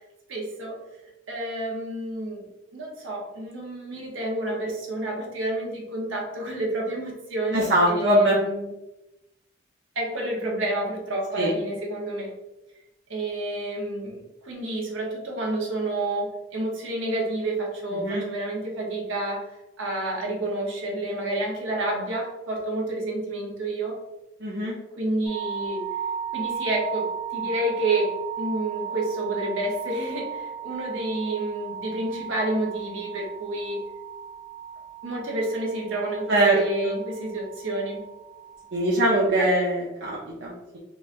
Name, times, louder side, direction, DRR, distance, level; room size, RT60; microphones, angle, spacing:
voice 1, 0.3-0.8 1.3-2.4 2.7-8.7 10.0-12.3 13.1-19.5 19.8-24.0 25.0-25.8 26.3-28.1 28.4-33.8 35.0-38.0 39.4-39.5, right 1 dB, 80° right, -1 dB, 1.0 m, -29 dB
voice 2, 7.5-8.4 11.4-11.5 17.9-18.2 24.4-24.7 36.3-36.6 36.8-36.9 38.7-40.8, right 1 dB, 60° right, -5 dB, 0.6 m, -22 dB
sound 1, 25.2-39.3, right 7 dB, 60° left, 1.3 m, -36 dB
3.8 x 3.1 x 2.6 m, 0.98 s
head